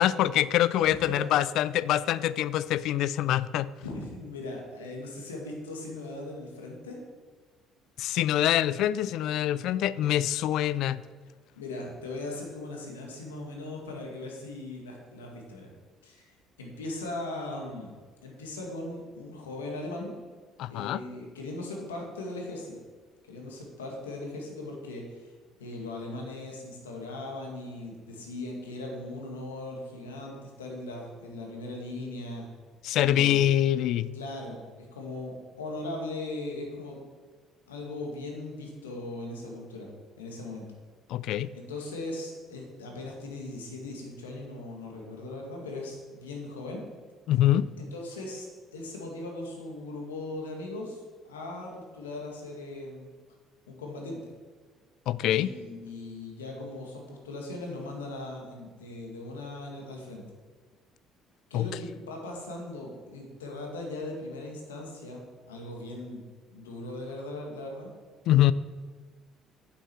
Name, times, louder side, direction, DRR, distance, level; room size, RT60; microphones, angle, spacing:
voice 1, 0.0-3.7 8.0-11.0 20.6-21.0 32.8-34.1 41.1-41.5 47.3-47.7 55.1-55.5 61.5-61.7 68.3-68.5, left 12 dB, 65° left, 18 dB, 0.3 m, -25 dB
voice 2, 0.7-1.2 3.8-7.0 11.6-15.7 16.0-16.3 16.6-17.9 18.2-20.1 20.7-22.8 23.3-25.3 25.6-32.5 33.0-33.6 34.1-37.0 37.7-39.9 40.2-40.6 41.5-46.8 47.8-48.5 48.7-53.1 53.7-54.2 55.3-60.2 61.5-66.2 66.5-67.9, left 2 dB, 90° left, 0 dB, 1.8 m, -39 dB
9.1 x 7.6 x 4.5 m, 1.4 s
hypercardioid pair, 55°, 0 cm